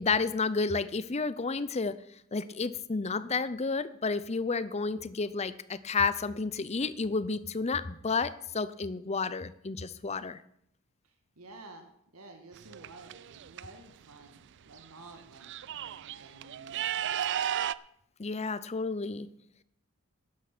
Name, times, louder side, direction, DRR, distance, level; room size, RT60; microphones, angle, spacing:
voice 1, 0.0-2.0 2.3-10.4 18.2-19.3, left 4 dB, 30° left, 15 dB, 0.6 m, -31 dB
voice 2, 11.4-11.9 12.1-17.1, right 2 dB, 80° right, 4 dB, 1.8 m, -52 dB
sound 1, 12.5-13.6 14.8-14.9 15.2-17.7, right 10 dB, 55° right, 0.4 m, -34 dB
12.5 x 9.8 x 6.1 m, 0.72 s
head